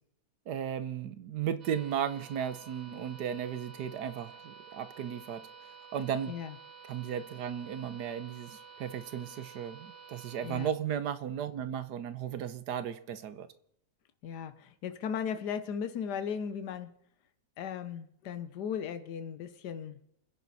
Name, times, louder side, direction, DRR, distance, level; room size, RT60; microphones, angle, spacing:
voice 1, 0.5-5.5 5.9-6.3 6.9-13.5, right 9 dB, 80° right, 1.5 m, -35 dB
sound 1, 1.6-10.7, right 5 dB, 55° right, 2.0 m, -51 dB
voice 2, 6.3-6.6 10.4-10.7 14.2-16.9 17.6-20.0, left 7 dB, 85° left, 1.5 m, -37 dB
28.0 x 10.5 x 4.1 m
omnidirectional pair, 1.7 m